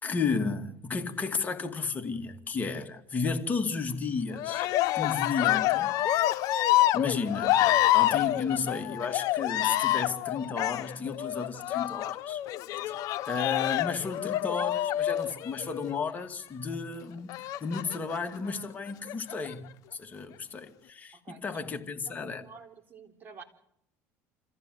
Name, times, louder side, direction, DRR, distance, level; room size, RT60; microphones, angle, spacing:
voice 1, 0.0-4.7 4.9-5.9 6.6-12.4 12.9-13.0 13.3-19.6 19.9-22.4, left 5 dB, 25° left, 2.4 m, -33 dB
Cheering, 4.3-16.0 17.3-18.2 18.9-19.5, left 14 dB, 60° left, 1.0 m, -27 dB
voice 2, 21.1-21.6 22.0-23.4, right 5 dB, 30° right, 4.3 m, -50 dB
27.5 x 15.0 x 8.0 m
supercardioid pair, 110°, 7 cm